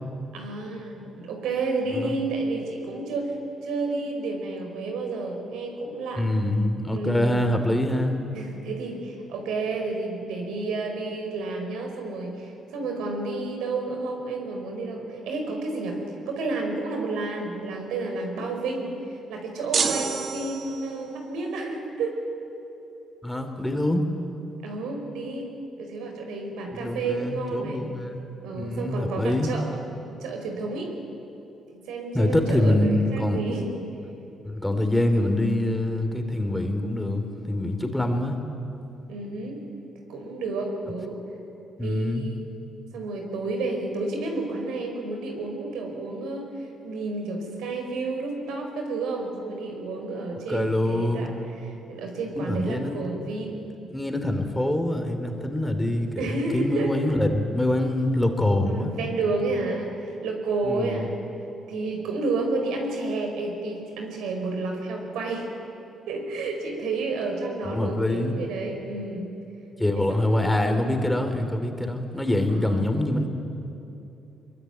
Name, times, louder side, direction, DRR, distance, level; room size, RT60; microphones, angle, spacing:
voice 1, 0.3-3.4 3.6-6.3 6.9-7.3 8.3-16.0 16.3-22.1 24.6-25.5 25.8-27.8 28.4-29.7 30.1-30.9 31.9-33.7 39.1-39.6 40.1-41.2 41.8-42.5 42.9-53.7 56.2-56.9 58.7-61.1 61.7-65.5 66.1-69.3 69.9-70.7 72.5-72.8, right 3 dB, 85° right, 3 dB, 5.1 m, -31 dB
voice 2, 6.1-8.2 23.2-24.1 26.7-28.3 28.5-29.5 32.1-33.4 34.4-38.4 41.8-42.3 50.5-51.3 52.3-53.0 53.9-58.9 60.6-61.1 67.6-68.4 69.8-73.3, left 1 dB, 10° left, 5 dB, 3.1 m, -25 dB
sound 1, 19.7-21.1, right 6 dB, 55° right, 1.9 m, -28 dB
22.5 x 22.5 x 9.3 m, 3.0 s
cardioid pair, 90°, 0 cm